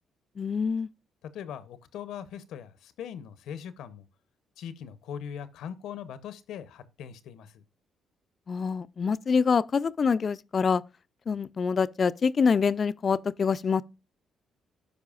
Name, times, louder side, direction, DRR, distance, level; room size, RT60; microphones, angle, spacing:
voice 1, 0.4-0.9 8.5-10.8 11.3-13.8, left 5 dB, 45° left, 0.3 m, -25 dB
voice 2, 1.2-4.0 4.6-7.6, left 8 dB, 85° left, 0.6 m, -40 dB
12.0 x 4.9 x 2.4 m
cardioid pair, 90°, 0 cm